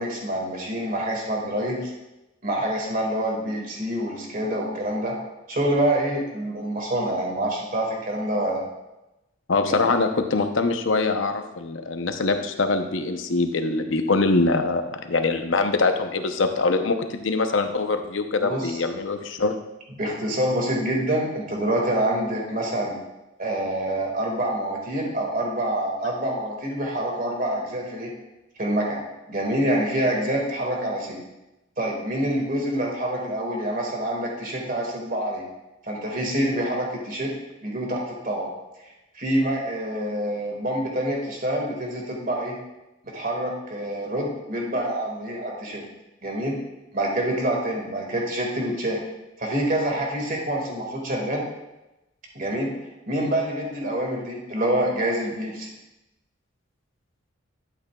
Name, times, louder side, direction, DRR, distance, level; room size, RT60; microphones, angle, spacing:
voice 1, 0.0-1.9 2.4-5.2 5.5-8.6 9.6-10.0 18.4-18.8 19.9-23.0 23.4-28.1 28.6-29.0 29.3-31.2 31.8-35.4 35.8-37.3 37.6-38.5 39.1-42.6 43.1-45.8 46.2-46.6 46.9-49.0 49.4-51.4 52.3-52.7 53.1-55.7, right 1 dB, 45° right, 0 dB, 1.9 m, -26 dB
voice 2, 9.5-19.5, left 3 dB, 70° left, 6 dB, 0.8 m, -23 dB
11.5 x 8.2 x 2.3 m, 0.97 s
head